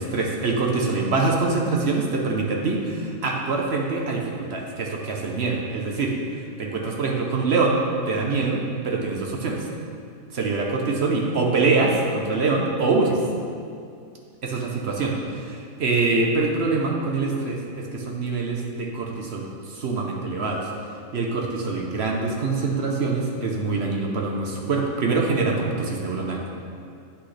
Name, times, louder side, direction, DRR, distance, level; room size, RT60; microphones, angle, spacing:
voice 1, 0.0-6.1 6.6-7.8 8.1-9.7 10.3-13.2 14.4-20.7 21.1-26.5, right 3 dB, 55° right, 0 dB, 0.9 m, -24 dB
8.5 x 6.0 x 3.3 m, 2.3 s
omnidirectional pair, 1.5 m